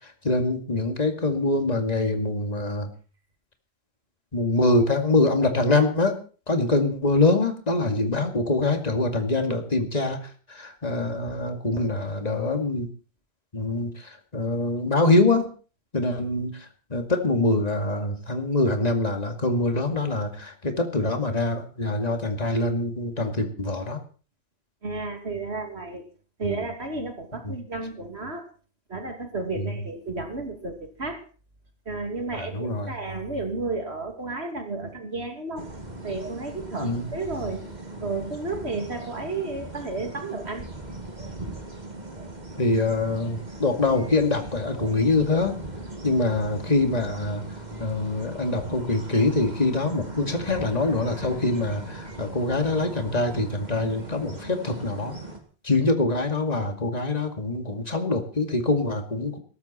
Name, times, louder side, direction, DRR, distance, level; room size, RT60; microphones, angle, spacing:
voice 1, 0.2-2.9 4.3-6.2 6.5-10.2 10.5-12.9 13.5-15.5 15.9-16.6 16.9-24.0 26.4-26.6 27.4-27.6 29.6-29.7 32.3-32.9 36.8-37.1 42.6-45.6 46.0-47.4 47.8-55.1 55.6-59.4, left 2 dB, 40° left, 5 dB, 2.4 m, -24 dB
voice 2, 24.8-26.0 26.4-28.4 28.9-31.2 31.9-35.6 36.0-37.6 38.0-40.6, right 3 dB, 80° right, 5 dB, 3.0 m, -32 dB
sound 1, 35.6-55.4, right 2 dB, 45° right, 2.5 m, -39 dB
17.0 x 14.5 x 4.4 m, 0.38 s
omnidirectional pair, 1.1 m